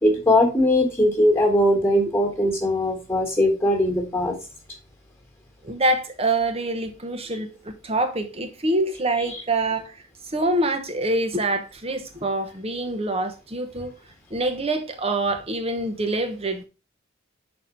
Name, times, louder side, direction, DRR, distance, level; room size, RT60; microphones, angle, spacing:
voice 1, 0.0-4.3, left 1 dB, 10° left, 1.7 m, -20 dB
voice 2, 5.6-10.0 10.3-13.9 14.3-16.6, right 2 dB, 30° right, 1.0 m, -25 dB
5.9 x 4.4 x 5.2 m
head